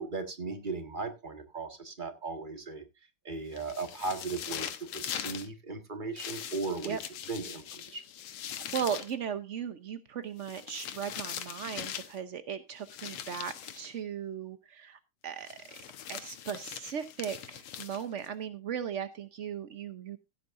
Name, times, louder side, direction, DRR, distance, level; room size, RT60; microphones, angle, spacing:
voice 1, 0.0-2.8 3.3-7.0 7.3-8.0, right 3 dB, 25° right, 7 dB, 1.7 m, -37 dB
sound 1, 3.5-5.5 6.2-9.1 10.4-12.2 12.9-13.9 15.5-18.3, left 9 dB, 85° left, 2.0 m, -41 dB
voice 2, 8.5-15.8 16.1-20.2, right 8 dB, 65° right, 10 dB, 0.7 m, -37 dB
16.0 x 10.0 x 2.6 m, 0.25 s
omnidirectional pair, 2.3 m